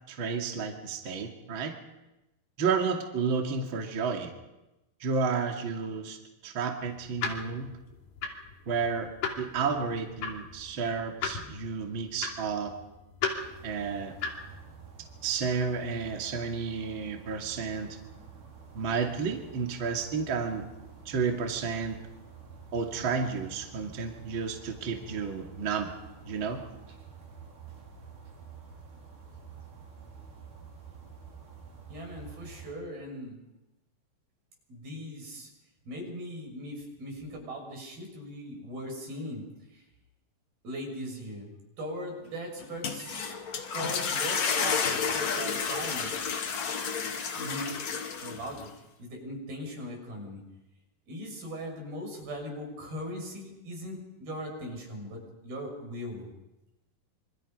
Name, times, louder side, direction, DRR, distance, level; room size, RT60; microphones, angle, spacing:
voice 1, 0.1-1.7 2.6-4.3 5.0-6.2 6.4-7.7 8.7-9.1 9.4-12.7 13.6-14.1 15.2-18.0 18.7-20.6 21.1-22.0 22.7-25.9 26.3-26.6, right 5 dB, 35° right, 2 dB, 2.7 m, -31 dB
sound 1, 6.8-14.6, left 5 dB, 90° left, 4.8 m, -37 dB
sound 2, 13.4-32.7, right 6 dB, 60° right, 5.9 m, -49 dB
voice 2, 31.9-33.4 34.7-35.5 35.9-39.4 39.7-39.8 40.6-43.3 43.7-46.1 47.3-47.7 48.2-48.7 49.0-50.4 51.1-56.3, equal, 80° right, 2 dB, 8.3 m, -39 dB
sound 3, 42.6-48.7, left 6 dB, 50° left, 3.1 m, -31 dB
27.5 x 25.0 x 5.4 m, 0.98 s
omnidirectional pair, 4.2 m